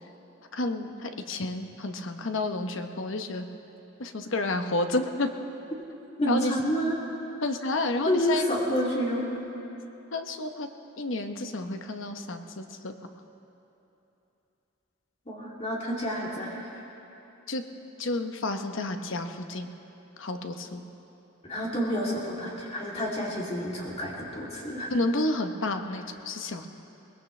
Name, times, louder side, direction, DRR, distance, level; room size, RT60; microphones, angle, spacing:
voice 1, 0.5-3.5 4.0-5.3 6.3-6.5 7.4-8.5 10.1-10.7 11.0-12.9 17.5-17.6 18.0-19.7 20.2-20.8 24.9-26.7, left 2 dB, 65° left, 6 dB, 1.0 m, -30 dB
voice 2, 6.2-7.0 8.1-9.3 15.3-16.7 21.4-24.9, equal, 30° left, -4 dB, 2.8 m, -29 dB
22.0 x 20.0 x 3.3 m, 3.0 s
head